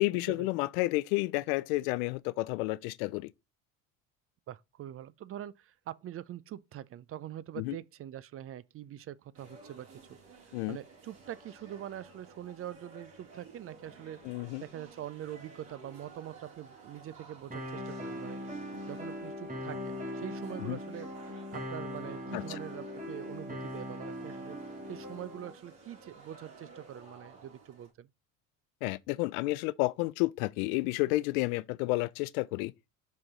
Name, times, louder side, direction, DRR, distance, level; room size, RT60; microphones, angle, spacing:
voice 1, 0.0-3.3 7.6-7.8 10.5-10.8 14.2-14.6 20.6-20.8 22.3-22.4 28.8-32.7, left 21 dB, 80° left, 0.5 m, -31 dB
voice 2, 4.5-14.2 14.6-18.6 18.9-21.1 21.5-24.6 24.9-28.1, right 11 dB, 35° right, 0.4 m, -44 dB
sound 1, 9.3-27.9, right 4 dB, 55° right, 3.2 m, -54 dB
sound 2, 17.5-25.5, equal, 20° right, 1.9 m, -40 dB
5.7 x 5.1 x 3.6 m
hypercardioid pair, 75°, 41 cm